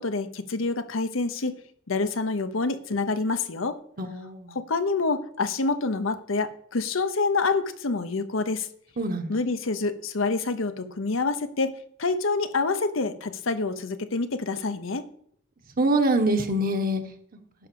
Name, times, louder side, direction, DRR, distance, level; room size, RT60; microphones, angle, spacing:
voice 1, 0.0-1.6 1.9-3.8 4.5-8.7 9.3-11.7 12.0-15.1, left 3 dB, 75° left, 9 dB, 0.9 m, -27 dB
voice 2, 4.0-4.6 9.0-9.3 15.8-17.0, right 1 dB, 45° right, 5 dB, 1.3 m, -24 dB
11.0 x 5.0 x 6.9 m, 0.64 s
head